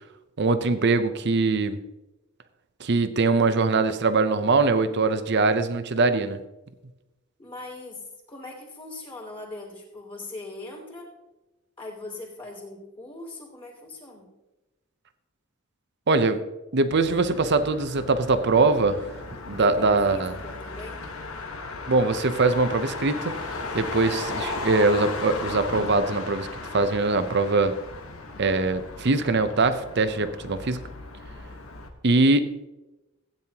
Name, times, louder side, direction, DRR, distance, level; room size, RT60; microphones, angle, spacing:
voice 1, 0.4-1.8 2.8-6.4 16.1-16.4 16.7-19.0 19.5-20.3 21.9-23.3 23.7-26.5 26.7-27.7 28.4-30.8 32.0-32.7, right 3 dB, 50° right, 11 dB, 0.7 m, -22 dB
voice 2, 7.4-11.1 11.8-14.3 19.6-21.1, left 2 dB, 25° left, 0 dB, 3.0 m, -40 dB
Motor vehicle (road), 16.9-31.9, left 3 dB, 70° left, 1.4 m, -36 dB
16.0 x 9.2 x 2.9 m, 1.0 s
head